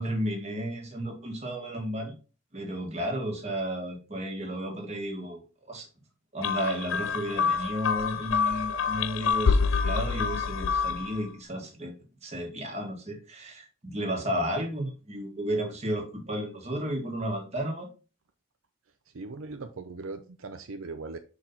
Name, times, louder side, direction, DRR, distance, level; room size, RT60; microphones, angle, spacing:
voice 1, 0.0-2.1 2.5-5.4 5.7-5.9 6.3-11.9 12.2-17.9, equal, 30° right, 2 dB, 1.7 m, -33 dB
sound 1, 6.4-11.2, left 5 dB, 70° left, 0.5 m, -27 dB
voice 2, 19.1-21.2, right 3 dB, 75° right, 8 dB, 0.6 m, -39 dB
5.8 x 4.8 x 3.9 m, 0.34 s
head